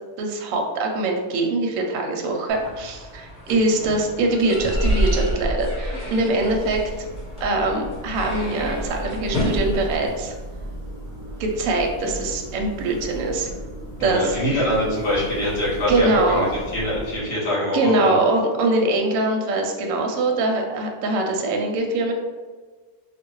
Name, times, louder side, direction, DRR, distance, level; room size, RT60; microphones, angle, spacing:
voice 1, 0.2-7.1 7.4-10.3 11.4-13.5 14.0-14.6 15.9-16.5 17.7-22.1, right 2 dB, 70° right, 1 dB, 0.9 m, -23 dB
sound 1, 2.5-10.1, equal, 5° right, 1.1 m, -28 dB
sound 2, 6.3-17.2, equal, 35° left, 1.0 m, -36 dB
voice 2, 14.0-18.2, left 1 dB, 60° left, -8 dB, 1.9 m, -24 dB
3.2 x 2.4 x 3.0 m, 1.4 s
omnidirectional pair, 1.6 m